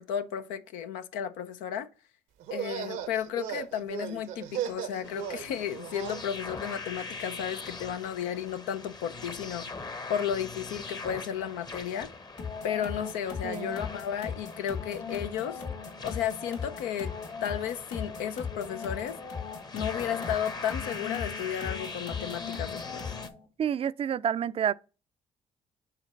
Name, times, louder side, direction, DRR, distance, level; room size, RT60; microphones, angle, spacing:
voice 1, 0.0-1.9 2.5-12.1 12.6-15.6 16.0-17.1 17.4-19.2 19.7-23.1, left 9 dB, 85° left, 0.6 m, -33 dB
sound 1, 2.4-6.2, right 9 dB, 80° right, 0.8 m, -37 dB
sound 2, 5.0-23.3, left 3 dB, 30° left, 0.9 m, -42 dB
sound 3, 12.4-23.5, left 6 dB, 60° left, 2.5 m, -38 dB
voice 2, 13.4-13.8 23.6-24.7, right 9 dB, 45° right, 0.4 m, -29 dB
5.1 x 3.8 x 5.2 m
supercardioid pair, 60°, 14 cm